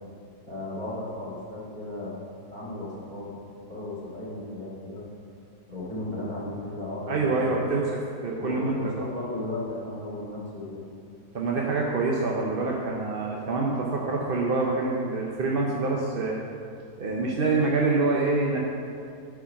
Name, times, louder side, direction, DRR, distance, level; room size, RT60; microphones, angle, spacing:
voice 1, 0.4-2.2 2.5-3.3 3.7-5.0 5.7-7.5 8.3-10.8, left 1 dB, 25° right, -7 dB, 2.4 m, -35 dB
voice 2, 7.1-9.1 11.3-16.4 17.0-18.6, right 3 dB, 45° right, -2 dB, 0.8 m, -26 dB
12.0 x 4.7 x 5.8 m, 2.4 s
omnidirectional pair, 1.7 m